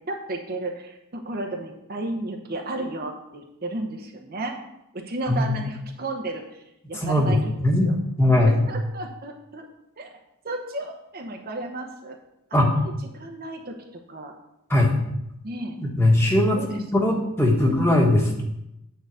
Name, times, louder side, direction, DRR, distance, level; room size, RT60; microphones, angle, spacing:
voice 1, 0.1-4.6 4.9-6.6 6.9-7.9 8.4-9.6 10.0-10.2 10.4-12.2 12.5-13.7 14.1-14.3 15.4-15.8 16.5-17.1 17.5-18.1, right 2 dB, 45° right, 2 dB, 0.9 m, -33 dB
voice 2, 7.0-7.9 8.2-8.5 12.5-12.7 14.7-14.9 15.8-18.4, left 1 dB, 10° left, -1 dB, 1.5 m, -20 dB
9.0 x 4.0 x 6.3 m, 0.84 s
head